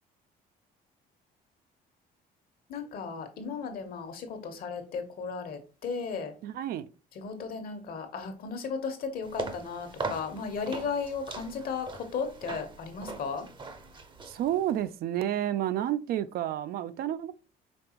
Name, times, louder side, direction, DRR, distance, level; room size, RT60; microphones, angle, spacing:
voice 1, 2.7-6.3 7.1-13.5, left 5 dB, 60° left, 1.1 m, -35 dB
voice 2, 6.4-6.9 14.3-17.3, right 11 dB, 65° right, 0.4 m, -30 dB
sound 1, 9.2-14.8, right 3 dB, 30° right, 0.7 m, -40 dB
5.2 x 3.4 x 2.9 m
cardioid pair, 110°, 17 cm